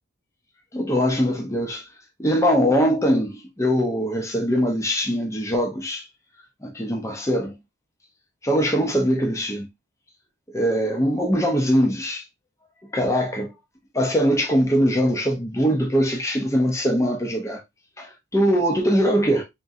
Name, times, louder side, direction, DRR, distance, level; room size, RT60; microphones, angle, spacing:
voice 1, 0.7-1.8 2.2-6.0 6.6-7.6 8.4-9.7 10.5-12.2 12.9-13.5 13.9-17.6 18.0-19.4, equal, 15° left, 0.7 m, -22 dB
3.7 x 2.9 x 2.5 m
head